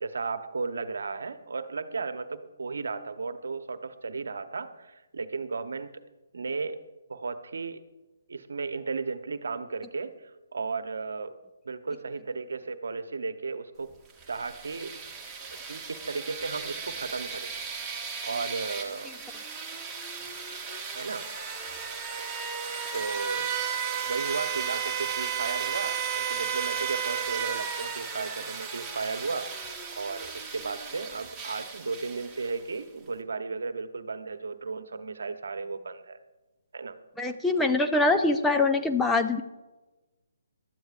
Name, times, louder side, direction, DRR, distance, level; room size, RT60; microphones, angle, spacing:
voice 1, 0.0-5.9 6.3-6.8 7.1-7.8 8.3-11.3 11.6-13.9 14.3-15.0 15.7-17.5 18.2-19.1 20.9-21.3 22.9-23.5 24.1-29.5 30.0-36.2 36.7-37.0, right 4 dB, 75° right, 10 dB, 1.0 m, -34 dB
sound 1, 14.1-32.8, right 7 dB, 10° right, 1.7 m, -34 dB
voice 2, 37.2-39.4, left 3 dB, 5° left, 5 dB, 0.7 m, -24 dB
21.5 x 13.0 x 2.6 m, 1.1 s
figure-of-eight pair, 145°, 0 cm